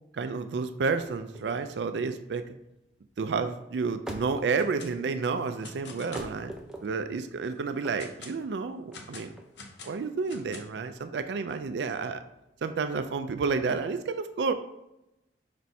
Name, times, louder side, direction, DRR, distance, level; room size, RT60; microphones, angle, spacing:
voice 1, 0.1-2.5 3.2-6.5 6.8-9.3 9.8-12.2 12.6-14.5, right 4 dB, 75° right, 9 dB, 0.4 m, -30 dB
sound 1, 1.0-13.8, right 1 dB, 5° right, 0.5 m, -47 dB
sound 2, 4.4-4.9 5.2-6.4 6.9-7.0 7.5-8.4 8.9-10.9, left 3 dB, 75° left, 0.8 m, -46 dB
5.2 x 4.2 x 4.6 m, 0.89 s
head